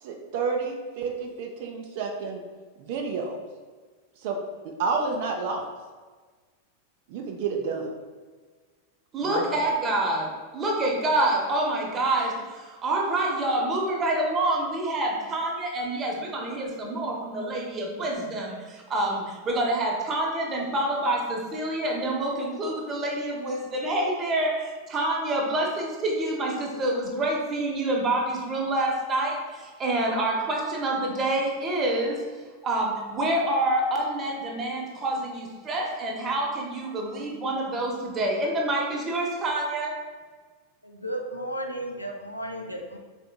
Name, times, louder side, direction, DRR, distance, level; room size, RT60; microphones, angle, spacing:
voice 1, 0.0-2.4 2.8-3.4 4.2-4.4 4.6-5.7 7.1-7.9 9.2-9.7, right 4 dB, 50° right, 2 dB, 0.4 m, -30 dB
voice 2, 9.1-32.2 32.6-40.0, right 1 dB, 25° right, -1 dB, 0.7 m, -27 dB
voice 3, 40.8-43.0, right 1 dB, 90° left, 2 dB, 0.4 m, -34 dB
3.8 x 3.5 x 2.2 m, 1.4 s
figure-of-eight pair, 90°, 0 cm